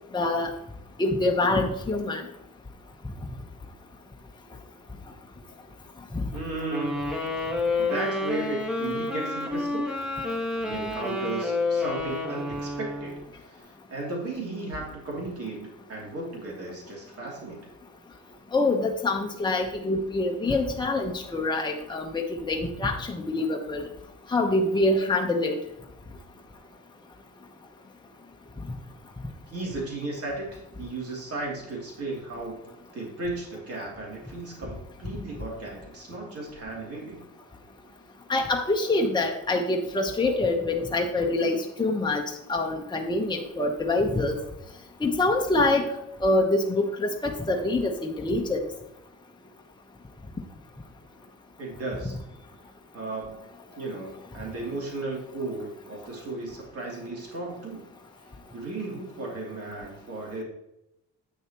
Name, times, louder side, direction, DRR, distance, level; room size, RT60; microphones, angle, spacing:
voice 1, 0.1-0.5 1.0-2.2 6.1-6.2 18.5-23.9 24.3-25.5 38.3-42.2 42.5-44.4 45.0-45.8 46.2-48.7, left 2 dB, 15° left, 1 dB, 1.0 m, -25 dB
voice 2, 6.3-7.1 7.4-9.9 10.6-13.1 13.4-17.7 29.5-32.6 32.9-37.2 51.6-52.1 52.9-53.5 53.8-57.9 58.5-60.4, right 2 dB, 50° right, -2 dB, 3.0 m, -35 dB
sound 1, 6.7-13.2, left 2 dB, 5° right, 1.6 m, -29 dB
8.6 x 6.4 x 3.0 m, 0.88 s
cardioid pair, 90°, 30 cm